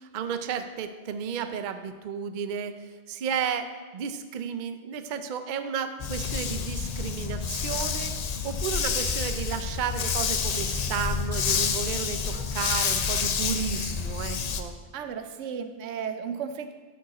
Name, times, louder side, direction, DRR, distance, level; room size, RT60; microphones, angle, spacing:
voice 1, 0.1-2.7 3.1-3.7 3.9-14.7, right 7 dB, 55° right, 9 dB, 0.5 m, -33 dB
Dog, 6.0-14.6, left 6 dB, 60° left, 0.4 m, -28 dB
voice 2, 14.9-16.7, right 7 dB, 75° right, 8 dB, 0.9 m, -34 dB
11.5 x 5.1 x 4.1 m, 1.3 s
omnidirectional pair, 1.3 m